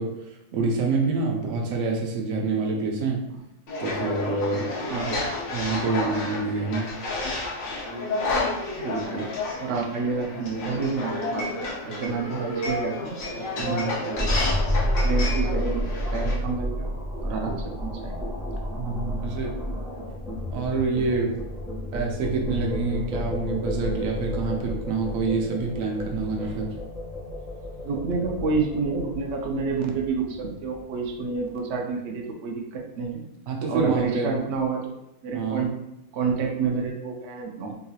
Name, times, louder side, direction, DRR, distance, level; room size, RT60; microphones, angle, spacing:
voice 1, 0.0-3.2 3.8-5.0 5.5-6.9 13.6-14.0 18.8-19.6 20.5-21.3 21.9-26.7 33.5-34.4 35.3-35.7, right 4 dB, 85° right, 0 dB, 1.0 m, -27 dB
sound 1, 3.7-16.3, left 2 dB, 80° left, 1.2 m, -31 dB
voice 2, 4.9-5.2 8.8-9.3 9.6-14.6 15.0-16.9 17.2-18.2 27.8-33.2 33.7-34.9 35.2-35.7 36.1-37.8, right 4 dB, 65° right, 0 dB, 0.8 m, -29 dB
sound 2, 14.2-31.4, equal, 5° right, 1.1 m, -30 dB
3.7 x 2.8 x 2.3 m, 0.87 s
omnidirectional pair, 1.4 m